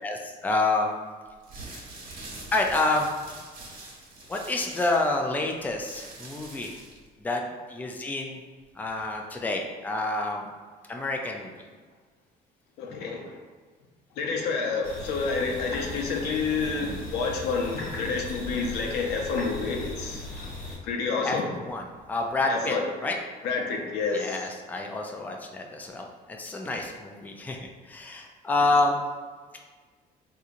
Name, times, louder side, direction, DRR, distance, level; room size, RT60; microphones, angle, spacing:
voice 1, 0.0-0.9 2.5-3.1 4.3-6.8 7.2-7.4 7.7-8.4 8.7-10.5 10.9-11.5 21.2-21.4 21.7-22.8 23.0-23.2 24.1-29.0, left 2 dB, 10° left, 1 dB, 0.4 m, -28 dB
sound 1, 1.3-7.1, right 2 dB, 65° right, 1.3 m, -44 dB
voice 2, 12.8-13.2 14.2-20.2 20.9-21.5 22.5-22.8 23.4-24.3, left 4 dB, 85° left, 1 dB, 0.6 m, -29 dB
sound 2, 14.8-20.8, left 1 dB, 50° left, 1.1 m, -38 dB
3.7 x 2.9 x 2.5 m, 1.5 s
cardioid pair, 110°, 17 cm